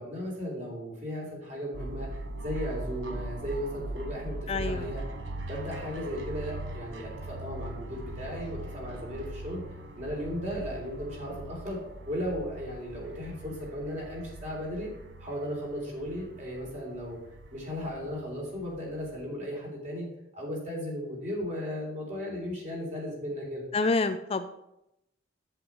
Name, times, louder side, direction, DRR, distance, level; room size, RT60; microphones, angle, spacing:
voice 1, 0.0-2.1 2.4-5.0 5.5-9.6 9.9-11.8 12.0-14.9 15.2-17.2 17.5-20.1 20.3-23.6, equal, 40° right, -2 dB, 3.4 m, -36 dB
dog clang, 1.7-19.3, right 2 dB, 70° right, 1.1 m, -41 dB
voice 2, 4.5-4.9 23.7-24.5, left 3 dB, 30° left, 9 dB, 0.4 m, -27 dB
8.3 x 7.9 x 4.4 m, 0.85 s
head